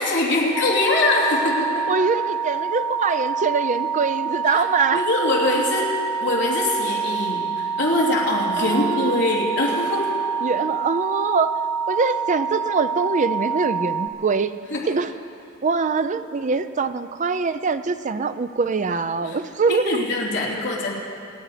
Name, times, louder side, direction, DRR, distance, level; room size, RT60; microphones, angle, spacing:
voice 1, 0.0-1.9 4.4-4.6 4.9-5.9 6.2-10.1 14.7-14.9 19.2-19.4 19.7-20.9, left 2 dB, 60° left, -3 dB, 3.1 m, -23 dB
sound 1, 0.5-14.1, right 6 dB, 5° left, 0.7 m, -26 dB
voice 2, 1.9-5.1 8.6-9.2 10.4-11.5 11.9-14.5 14.9-15.1 15.6-20.0, right 4 dB, 35° right, 11 dB, 0.5 m, -23 dB
27.0 x 9.8 x 5.0 m, 2.6 s
head